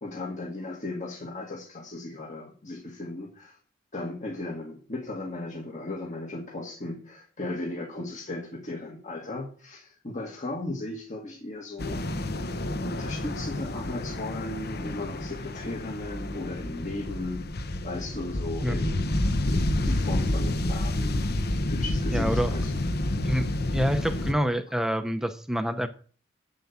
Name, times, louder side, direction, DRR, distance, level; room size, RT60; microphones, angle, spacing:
voice 1, 0.0-3.6 3.9-19.0 19.5-21.2 21.6-22.8, left 2 dB, 40° left, 0 dB, 1.8 m, -36 dB
sound 1, 11.8-24.3, left 1 dB, 55° left, 0.9 m, -29 dB
voice 2, 22.1-22.5 23.2-25.9, equal, 5° right, 9 dB, 0.7 m, -27 dB
8.3 x 7.7 x 7.2 m, 0.43 s
head